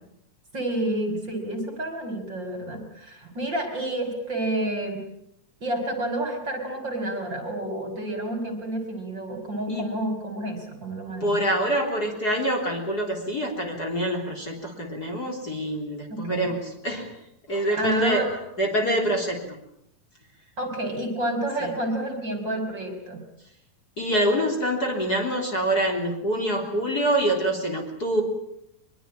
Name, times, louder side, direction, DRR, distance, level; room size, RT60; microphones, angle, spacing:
voice 1, 0.5-5.0 5.6-11.4 16.1-16.5 17.8-18.3 20.6-23.2, right 1 dB, 35° right, 5 dB, 3.8 m, -29 dB
voice 2, 11.2-17.1 17.5-19.4 21.6-21.7 24.0-28.2, right 1 dB, 30° left, 2 dB, 3.8 m, -25 dB
23.5 x 22.5 x 8.8 m, 0.78 s
omnidirectional pair, 3.9 m